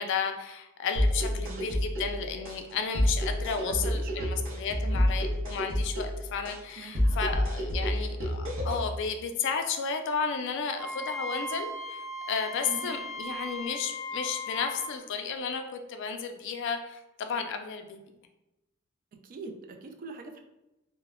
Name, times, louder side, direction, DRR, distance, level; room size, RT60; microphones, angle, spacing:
voice 1, 0.0-18.0, left 5 dB, 60° left, 6 dB, 0.3 m, -33 dB
sound 1, 1.0-9.0, equal, 65° right, 0.7 m, -29 dB
voice 2, 1.4-1.7 3.6-4.3 4.8-5.1 6.8-7.2 12.7-13.0 19.1-20.4, right 4 dB, 45° right, 5 dB, 0.3 m, -43 dB
Wind instrument woodwind instrument, 10.8-14.9, left 1 dB, 15° right, 0.8 m, -37 dB
2.1 x 2.1 x 3.4 m, 0.95 s
head